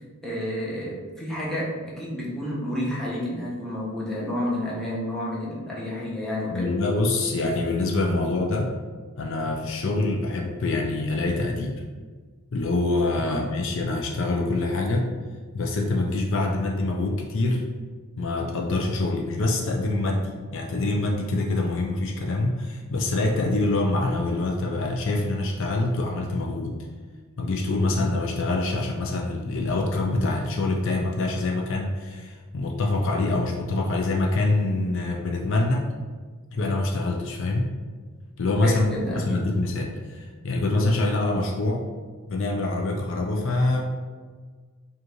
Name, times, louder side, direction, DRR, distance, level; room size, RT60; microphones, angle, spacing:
voice 1, 0.2-6.7 13.2-13.4 27.9-28.0 38.6-39.4, equal, ahead, -7 dB, 0.9 m, -30 dB
voice 2, 6.5-8.7 9.2-11.8 12.5-15.1 15.5-17.6 18.2-26.7 27.4-35.9 36.5-37.7 38.4-38.9 39.2-41.9 42.3-43.8, left 2 dB, 55° left, 0 dB, 0.5 m, -25 dB
4.9 x 2.5 x 3.0 m, 1.5 s
head